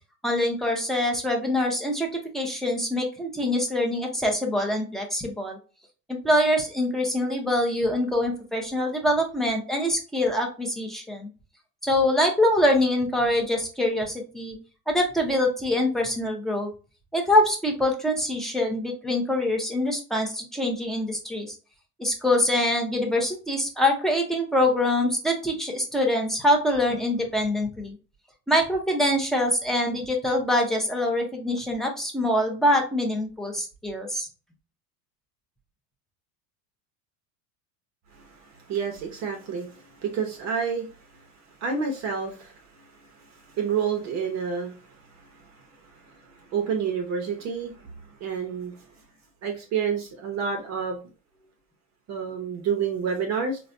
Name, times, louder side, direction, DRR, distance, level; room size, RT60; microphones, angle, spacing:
voice 1, 0.2-5.6 6.1-11.3 11.8-14.6 14.9-16.7 17.1-21.5 22.0-28.0 28.5-34.3, left 1 dB, ahead, 0 dB, 0.7 m, -24 dB
voice 2, 38.1-40.9 41.6-47.9 48.2-48.7 49.4-51.0 52.1-53.6, right 6 dB, 35° right, 2 dB, 0.8 m, -30 dB
4.1 x 2.2 x 2.5 m, 0.34 s
hypercardioid pair, 110°, 46 cm